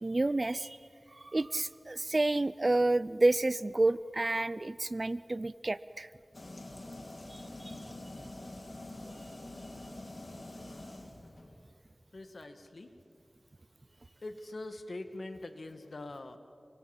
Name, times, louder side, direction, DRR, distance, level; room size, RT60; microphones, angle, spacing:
voice 1, 0.0-0.8 1.1-6.1 7.3-7.8 9.0-9.1, right 2 dB, 45° right, 17 dB, 0.6 m, -30 dB
sound 1, 6.3-11.6, left 1 dB, 50° left, 2.9 m, -46 dB
voice 2, 12.1-13.0 14.2-16.4, left 2 dB, 65° left, 7 dB, 2.2 m, -43 dB
28.5 x 23.5 x 7.5 m, 2.3 s
wide cardioid pair, 45°, 0 cm